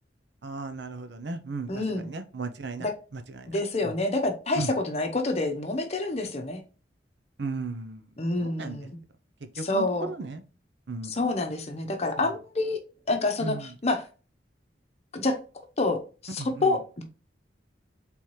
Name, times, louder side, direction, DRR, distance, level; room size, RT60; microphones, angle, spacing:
voice 1, 0.4-2.9 3.1-3.5 3.8-3.9 4.6-4.7 7.4-8.1 8.4-8.8 9.6-10.4 10.9-11.1 13.4-13.7 16.4-16.8, right 3 dB, 70° right, 0.7 m, -35 dB
voice 2, 1.7-2.1 2.8-2.9 3.5-6.6 8.2-9.0 9.5-10.1 11.1-12.8 13.1-14.0 15.1-15.4 15.8-17.0, left 2 dB, 35° left, 0.8 m, -28 dB
4.5 x 3.5 x 3.1 m
head